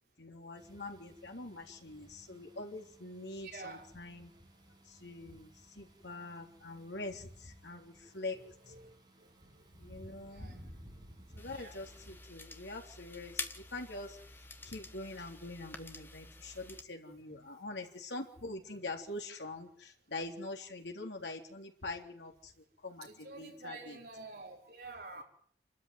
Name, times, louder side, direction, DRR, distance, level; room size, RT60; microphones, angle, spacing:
voice 1, 0.2-4.3 4.9-8.4 8.7-8.8 9.8-10.6 11.3-24.0, left 2 dB, 85° left, 3.6 m, -44 dB
sound 1, 0.5-12.2, equal, 20° right, 6.2 m, -57 dB
voice 2, 3.4-3.9 8.2-9.7 10.3-10.7 11.4-11.9 17.1-17.5 18.7-18.9 23.0-25.2, right 3 dB, 60° right, 5.4 m, -50 dB
sound 2, 11.4-16.8, left 3 dB, 10° left, 1.2 m, -47 dB
28.0 x 13.0 x 9.5 m
head